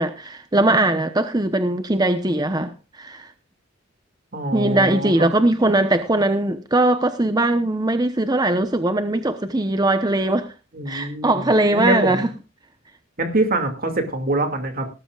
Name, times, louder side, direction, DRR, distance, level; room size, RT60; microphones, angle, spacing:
voice 1, 0.0-3.3 4.5-10.5 10.9-12.3, right 2 dB, 20° right, 0.9 m, -20 dB
voice 2, 4.3-5.1 10.7-12.3 13.2-14.9, right 2 dB, 45° right, 2.5 m, -24 dB
19.0 x 13.0 x 2.4 m
head